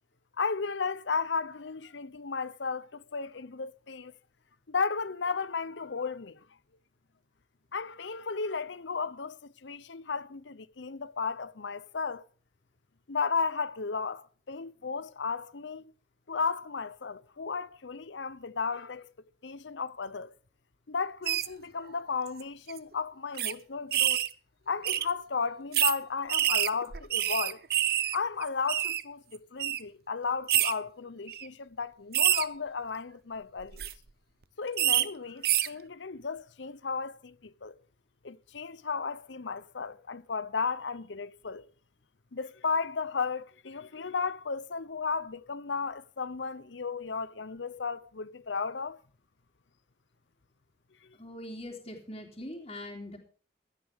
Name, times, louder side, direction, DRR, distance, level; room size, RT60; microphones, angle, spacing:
voice 1, 0.4-4.1 4.7-6.4 7.7-12.2 13.1-15.8 16.3-19.1 19.4-20.3 20.9-24.2 24.7-27.6 28.1-33.9 34.6-37.8 38.2-41.6 42.3-49.0 51.0-51.1, left 5 dB, 85° left, 0.8 m, -34 dB
sound 1, 21.3-21.5 22.3-22.4 22.7-22.8 23.4-23.5 23.9-24.3 24.8-25.1 25.7-26.0 26.3-28.2 28.4-29.0 29.6-29.8 30.5-30.7 31.3-31.5 32.1-32.4 33.6-33.9 34.8-35.0 35.4-35.7, right 12 dB, 55° right, 0.8 m, -26 dB
voice 2, 51.2-53.2, left 1 dB, 35° left, 3.2 m, -42 dB
16.0 x 13.0 x 3.6 m
head